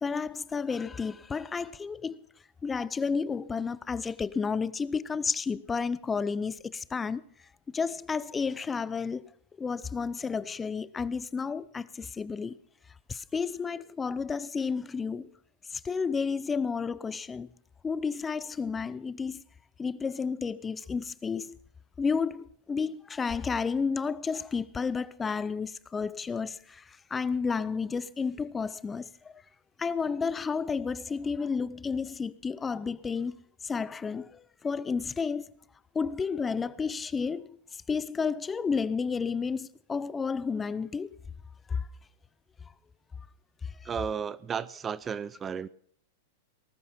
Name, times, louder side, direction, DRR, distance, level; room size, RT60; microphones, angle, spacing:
voice 1, 0.0-2.3 2.6-7.2 7.7-9.3 9.6-12.6 13.1-15.3 15.7-17.5 17.8-19.4 19.8-21.6 22.0-29.3 29.8-33.4 33.6-35.5 35.9-37.6 37.9-41.2 41.7-41.9 43.8-43.9, left 5 dB, 15° left, 0.7 m, -31 dB
voice 2, 43.8-45.7, right 7 dB, 25° right, 0.6 m, -33 dB
19.0 x 13.5 x 4.4 m
hypercardioid pair, 110°, 0 cm